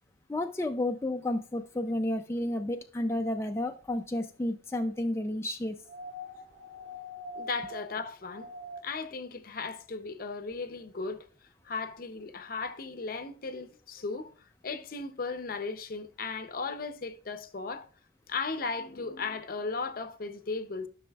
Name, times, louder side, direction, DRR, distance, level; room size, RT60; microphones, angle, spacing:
voice 1, 0.3-5.8, left 1 dB, 15° left, 0.4 m, -31 dB
sound 1, 5.8-9.1 10.5-10.6, left 1 dB, 70° right, 2.2 m, -43 dB
voice 2, 7.3-8.5 8.8-11.3 11.6-14.3 14.6-17.9 18.3-20.9, left 4 dB, 50° left, 0.6 m, -36 dB
13.0 x 6.0 x 2.3 m
head